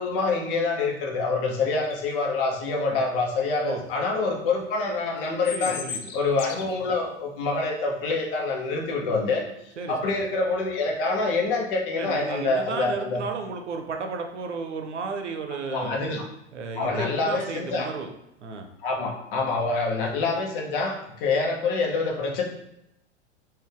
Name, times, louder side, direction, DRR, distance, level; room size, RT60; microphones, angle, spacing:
voice 1, 0.0-5.8 6.1-9.5 9.9-13.2 15.7-16.2 16.8-17.9 18.8-22.4, left 3 dB, 50° left, 0 dB, 1.1 m, -26 dB
sound 1, 1.8-2.2 5.2-6.7, left 7 dB, 30° left, 0.4 m, -35 dB
voice 2, 5.4-6.1 9.8-10.2 11.9-16.0 16.5-18.1 18.4-18.7, right 4 dB, 75° right, 5 dB, 0.7 m, -33 dB
3.9 x 2.6 x 3.5 m, 0.83 s
figure-of-eight pair, 90°, 36 cm